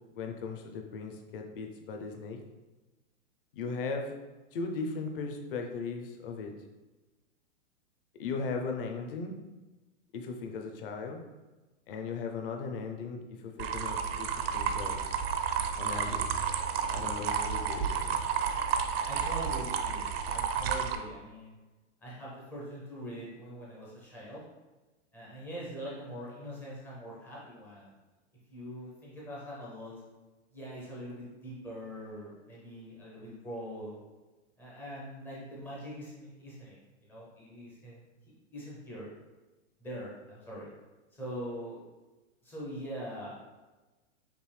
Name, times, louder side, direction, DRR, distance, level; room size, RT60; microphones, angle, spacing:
voice 1, 0.1-2.4 3.5-4.1 4.5-6.5 8.2-9.3 10.1-11.2 11.9-15.1 15.8-16.3 16.9-18.2, left 4 dB, 45° left, 4 dB, 0.7 m, -37 dB
sound 1, 13.6-21.0, right 7 dB, 55° right, 0.5 m, -31 dB
voice 2, 19.1-21.6 22.0-24.4 25.1-27.9 28.5-30.0 30.5-34.0 34.6-39.1 39.8-40.7 41.1-41.8 42.4-43.4, equal, 5° left, -7 dB, 0.4 m, -43 dB
5.2 x 2.6 x 3.2 m, 1.2 s
hypercardioid pair, 150°, 37 cm